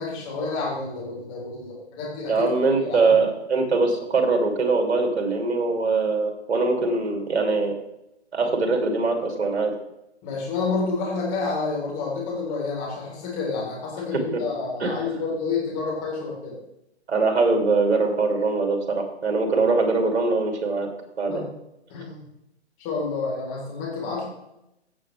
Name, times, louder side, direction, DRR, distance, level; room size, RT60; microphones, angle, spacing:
voice 1, 0.0-2.5 2.8-3.1 10.2-16.6 19.5-19.7 21.3-21.5 21.9-22.2 22.8-24.3, left 4 dB, 25° left, -3 dB, 4.2 m, -29 dB
voice 2, 2.3-7.7 8.3-9.7 14.3-14.4 14.8-15.0 17.1-20.9 21.2-21.3, right 3 dB, 70° right, 3 dB, 2.9 m, -22 dB
17.0 x 7.0 x 3.4 m, 0.87 s
hypercardioid pair, 145°, 34 cm